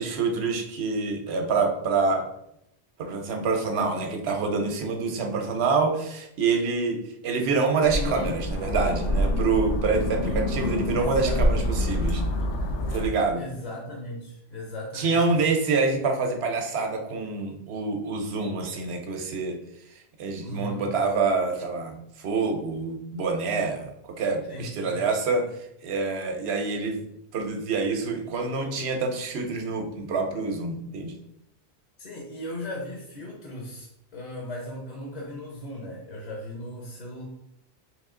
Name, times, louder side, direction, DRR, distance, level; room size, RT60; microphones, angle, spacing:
voice 1, 0.0-2.3 3.0-12.2 12.9-13.4 14.9-19.6 20.2-23.9 24.2-25.5 25.8-27.0 27.3-31.2, right 4 dB, 70° right, 3 dB, 0.9 m, -26 dB
sound 1, 7.8-13.1, equal, 80° left, 0.9 m, -26 dB
voice 2, 7.9-8.4 10.9-11.4 13.4-15.5 20.4-20.9 24.5-25.0 32.0-37.2, left 1 dB, 45° left, -1 dB, 0.7 m, -37 dB
3.5 x 2.7 x 3.6 m, 0.79 s
omnidirectional pair, 1.2 m